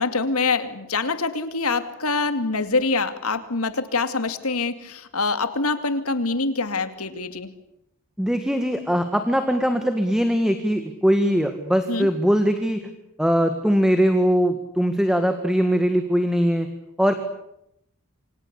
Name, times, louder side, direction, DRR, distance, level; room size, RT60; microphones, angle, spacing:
voice 1, 0.0-7.5 11.9-12.1, left 3 dB, 90° left, 10 dB, 2.5 m, -25 dB
voice 2, 8.2-12.8 13.2-16.7 17.0-17.1, equal, 5° right, 7 dB, 1.9 m, -21 dB
28.0 x 25.0 x 8.3 m, 0.81 s
head